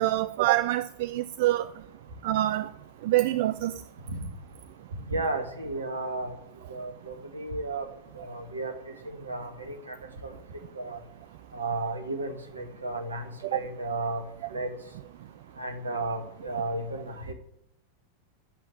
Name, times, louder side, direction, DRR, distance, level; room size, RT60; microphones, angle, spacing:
voice 1, 0.0-1.7 2.2-2.7 3.0-3.8 13.5-13.6, right 15 dB, 50° right, 0.4 m, -25 dB
voice 2, 5.1-6.4 6.7-7.9 8.2-10.0 10.2-10.3 10.8-11.0 11.5-14.2 14.5-14.7 15.6-17.3, right 2 dB, 75° right, 2.0 m, -33 dB
11.0 x 7.7 x 9.9 m
figure-of-eight pair, 90°, 0 cm